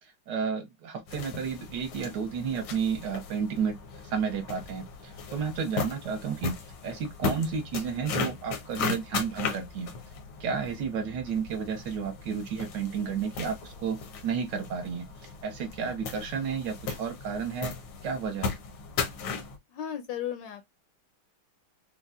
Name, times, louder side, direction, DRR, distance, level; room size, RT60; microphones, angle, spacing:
voice 1, 0.3-3.8 4.0-6.6 6.8-9.9 10.4-14.0 14.2-17.7 18.0-18.5, right 6 dB, 65° right, 1.3 m, -32 dB
sound 1, 1.1-19.6, left 5 dB, 90° left, 1.7 m, -37 dB
voice 2, 19.7-20.6, left 9 dB, 75° left, 1.1 m, -35 dB
5.4 x 2.1 x 2.4 m
omnidirectional pair, 2.3 m